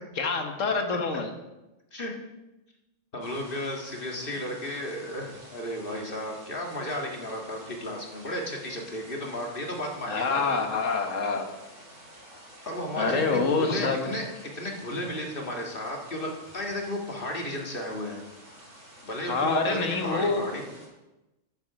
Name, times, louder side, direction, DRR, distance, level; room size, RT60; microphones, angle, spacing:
voice 1, 0.2-1.3 10.1-11.5 13.0-14.1 19.2-20.4, left 4 dB, 75° left, 4 dB, 1.7 m, -26 dB
voice 2, 3.1-10.4 12.7-14.3 14.5-18.2 19.0-20.6, left 1 dB, 45° left, 1 dB, 2.0 m, -34 dB
sound 1, 3.2-20.9, right 1 dB, 75° right, 4.3 m, -50 dB
9.8 x 8.4 x 5.9 m, 1.0 s
omnidirectional pair, 1.3 m